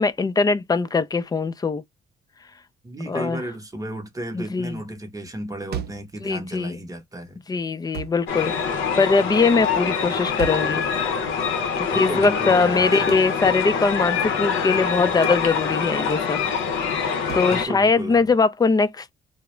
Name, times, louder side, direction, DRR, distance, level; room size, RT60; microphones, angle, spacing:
voice 1, 0.0-1.8 3.1-3.4 4.3-4.8 6.2-6.8 7.5-10.9 11.8-16.4 17.0-19.1, left 4 dB, 20° left, 0.3 m, -21 dB
voice 2, 2.8-7.4 11.9-13.1 17.5-18.3, right 1 dB, 15° right, 0.8 m, -33 dB
sound 1, 5.7-6.1 7.9-8.3 10.4-10.8 13.1-13.3 15.2-15.5 17.3-17.6, right 9 dB, 55° right, 0.5 m, -34 dB
sound 2, 8.3-17.7, left 6 dB, 80° left, 0.6 m, -25 dB
2.3 x 2.0 x 3.0 m
cardioid pair, 90°, 20 cm